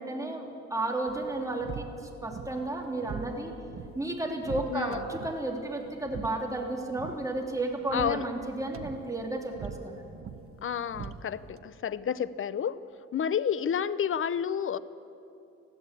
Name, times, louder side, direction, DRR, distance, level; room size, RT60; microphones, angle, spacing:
voice 1, 0.0-1.8 2.2-3.5 3.9-10.1, right 2 dB, 10° right, 1 dB, 3.2 m, -33 dB
sound 1, 1.1-11.6, right 6 dB, 50° right, 1.1 m, -44 dB
voice 2, 4.7-5.0 7.9-8.2 10.6-12.8 13.1-14.8, left 8 dB, 45° left, 16 dB, 0.7 m, -30 dB
20.5 x 15.0 x 8.5 m, 2.6 s
cardioid pair, 90°, 30 cm